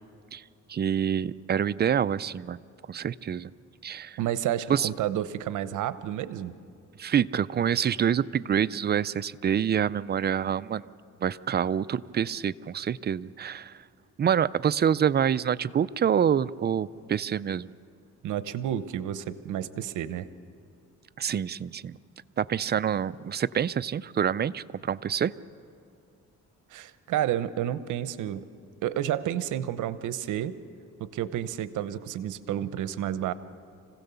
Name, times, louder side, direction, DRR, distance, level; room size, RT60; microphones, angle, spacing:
voice 1, 0.7-2.6 2.9-3.5 3.8-4.2 4.7-4.9 7.0-10.9 11.2-13.8 14.2-17.7 21.2-22.0 22.4-25.3, right 8 dB, 35° right, 16 dB, 0.4 m, -26 dB
voice 2, 4.2-6.5 18.2-20.3 26.7-28.4 28.8-30.6 31.0-33.3, right 11 dB, 80° right, 14 dB, 0.8 m, -30 dB
26.0 x 16.0 x 6.9 m, 2.4 s
cardioid pair, 90°, 30 cm